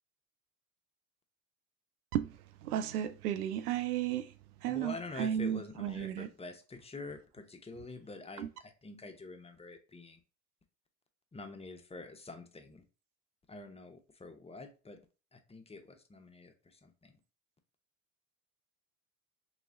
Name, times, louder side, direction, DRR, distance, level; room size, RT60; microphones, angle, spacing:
voice 1, 2.6-4.3 4.6-6.3 8.4-8.5, right 10 dB, 90° right, 0.5 m, -34 dB
voice 2, 4.7-10.2 11.3-12.8 13.5-15.0 15.3-17.1, left 3 dB, 15° left, 0.8 m, -47 dB
3.3 x 3.1 x 3.7 m
hypercardioid pair, 75°, 44 cm